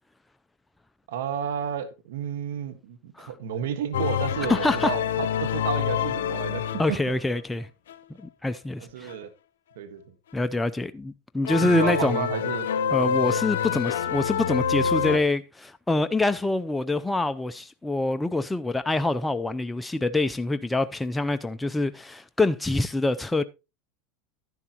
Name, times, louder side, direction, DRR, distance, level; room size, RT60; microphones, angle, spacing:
voice 1, 1.1-7.1 8.8-9.3 9.8-10.1 11.6-12.7, right 9 dB, 80° right, 1.5 m, -32 dB
sound 1, 3.9-7.3 7.9-8.0 9.1-9.2 11.5-15.2, left 7 dB, 90° left, 0.7 m, -27 dB
voice 2, 4.5-4.9 6.8-7.7 8.2-9.1 10.3-12.3 12.9-23.4, left 2 dB, 10° left, 0.5 m, -25 dB
11.0 x 11.0 x 2.9 m
supercardioid pair, 115°, 0 cm